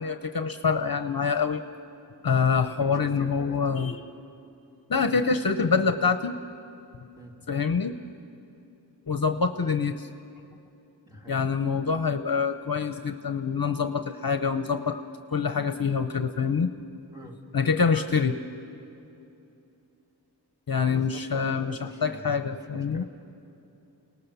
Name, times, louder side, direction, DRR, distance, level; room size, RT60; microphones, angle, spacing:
voice 1, 0.0-1.6 2.2-4.0 4.9-6.4 7.5-8.0 9.1-10.1 11.3-15.0 15.3-16.7 17.5-18.4 20.7-23.0, left 5 dB, 55° left, 8 dB, 0.9 m, -25 dB
voice 2, 2.8-3.8 7.2-7.5 11.0-11.4 17.1-17.4 20.9-23.0, right 1 dB, 10° right, 0 dB, 3.1 m, -46 dB
30.0 x 19.0 x 6.9 m, 2.8 s
wide cardioid pair, 70°, 42 cm